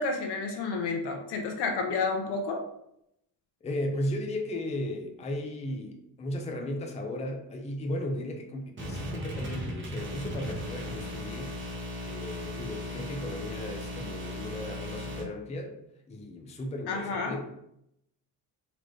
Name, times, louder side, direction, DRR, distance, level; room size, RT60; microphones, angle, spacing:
voice 1, 0.0-2.6 16.9-17.4, left 4 dB, 80° left, 3 dB, 0.9 m, -30 dB
voice 2, 3.6-11.6 12.0-15.8 16.1-17.5, left 1 dB, 15° left, 2 dB, 0.5 m, -35 dB
sound 1, 8.8-15.2, left 1 dB, 30° right, 1.1 m, -37 dB
4.1 x 3.0 x 3.1 m, 0.77 s
cardioid pair, 130°, 40 cm